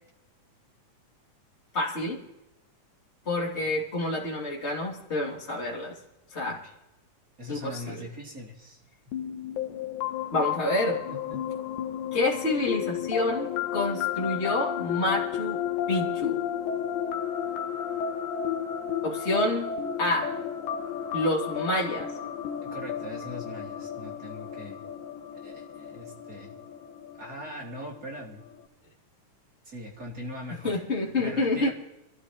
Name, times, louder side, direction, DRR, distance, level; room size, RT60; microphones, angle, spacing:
voice 1, 1.7-2.2 3.2-6.0 6.3-6.6 7.5-7.9 10.3-11.0 12.1-15.6 15.9-16.4 19.0-19.7 20.0-20.3 21.1-22.1 30.6-31.7, left 2 dB, 20° left, -3 dB, 3.1 m, -28 dB
voice 2, 6.4-6.8 7.4-8.8 11.1-11.4 22.6-24.8 25.4-26.5 27.2-28.4 29.6-30.8 31.2-31.7, equal, 35° right, -2 dB, 3.1 m, -41 dB
sound 1, 9.1-28.6, left 9 dB, 85° left, 2.3 m, -33 dB
26.5 x 14.0 x 3.1 m, 0.94 s
omnidirectional pair, 3.3 m